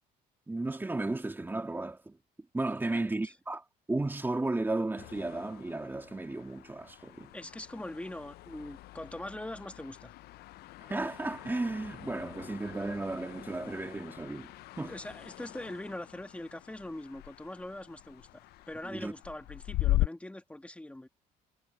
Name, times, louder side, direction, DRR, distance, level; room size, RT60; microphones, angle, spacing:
voice 1, 0.5-2.2 2.5-7.3 10.8-14.5 14.8-14.9 18.8-19.1, right 2 dB, 10° right, 2.3 m, -34 dB
voice 2, 2.8-3.3 7.3-10.1 14.9-18.3 18.7-21.1, left 1 dB, 5° left, 1.7 m, -42 dB
sound 1, 5.0-20.1, left 16 dB, 70° left, 0.4 m, -39 dB
cardioid pair, 110°, 17 cm